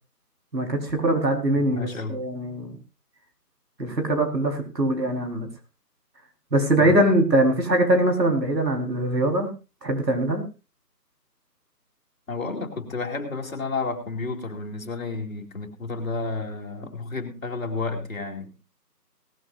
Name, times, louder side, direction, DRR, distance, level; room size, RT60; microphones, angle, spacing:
voice 1, 0.5-2.8 3.8-5.5 6.5-9.5 9.8-10.4, right 1 dB, 85° right, 3 dB, 4.5 m, -22 dB
voice 2, 1.6-2.2 6.8-7.0 12.3-18.5, left 3 dB, 55° left, 3 dB, 2.6 m, -31 dB
18.0 x 14.5 x 2.6 m, 0.29 s
figure-of-eight pair, 170°, 48 cm